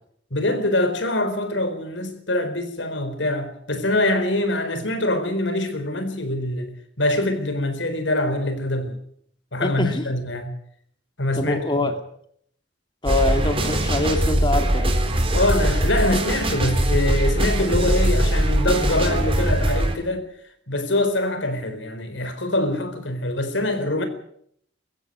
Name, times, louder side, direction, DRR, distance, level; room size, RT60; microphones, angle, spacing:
voice 1, 0.3-9.0 9.5-10.5 11.2-11.9 15.3-20.2 20.7-24.1, left 1 dB, 90° left, 4.2 m, -24 dB
voice 2, 9.6-10.1 11.3-11.9 13.0-14.9, left 2 dB, 25° left, 2.3 m, -24 dB
sound 1, 13.1-19.9, right 1 dB, 30° right, 3.6 m, -21 dB
22.5 x 15.0 x 9.5 m
head